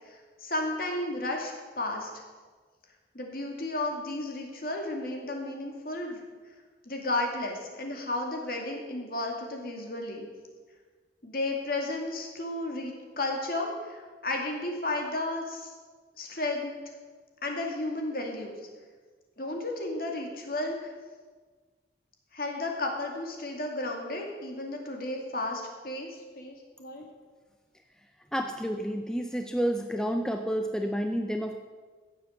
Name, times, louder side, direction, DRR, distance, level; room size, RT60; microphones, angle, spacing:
voice 1, 0.1-2.1 3.1-6.2 6.9-10.3 11.2-15.7 16.2-16.7 17.4-18.6 19.4-20.9 22.3-26.1 26.4-27.0, left 2 dB, 50° left, 1 dB, 2.4 m, -33 dB
voice 2, 28.3-31.6, equal, 5° left, 5 dB, 0.5 m, -30 dB
15.5 x 7.4 x 7.3 m, 1.4 s
head